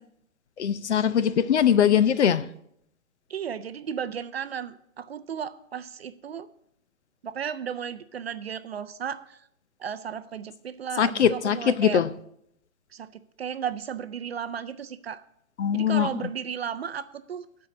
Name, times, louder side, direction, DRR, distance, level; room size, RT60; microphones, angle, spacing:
voice 1, 0.6-2.5 11.0-12.1 15.6-16.1, left 8 dB, 55° left, 0.6 m, -21 dB
voice 2, 3.3-6.5 7.2-9.4 9.8-12.0 12.9-13.1 13.4-15.2 15.7-17.5, right 8 dB, 50° right, 0.5 m, -34 dB
12.0 x 4.7 x 7.5 m
hypercardioid pair, 160°, 41 cm